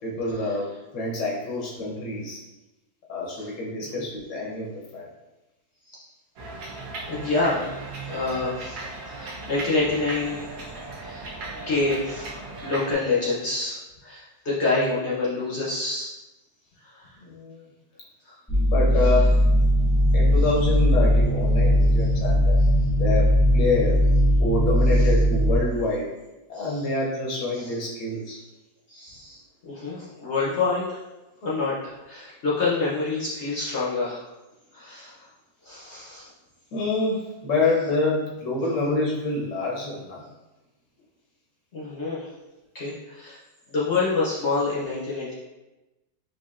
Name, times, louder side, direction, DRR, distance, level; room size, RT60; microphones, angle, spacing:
voice 1, 0.0-0.7 0.9-2.4 3.1-5.1 17.2-17.6 18.7-19.3 20.1-22.6 23.0-24.0 24.4-26.1 26.5-28.4 36.7-40.2, left 2 dB, 80° left, -4 dB, 1.6 m, -27 dB
sound 1, 6.4-12.9, right 3 dB, 65° right, 1.2 m, -37 dB
voice 2, 7.1-7.6 8.1-10.5 11.0-11.3 11.5-16.1 16.8-17.1 18.3-18.4 19.0-19.1 25.0-25.1 26.5-26.8 27.5-27.7 28.9-31.0 31.4-34.3 34.7-35.3 35.6-36.3 41.7-42.3 42.7-43.4 43.7-45.3, left 3 dB, 55° left, -7 dB, 0.8 m, -27 dB
sound 2, 18.5-25.6, equal, ahead, 0.4 m, -19 dB
4.9 x 2.6 x 2.4 m, 1.0 s
omnidirectional pair, 1.9 m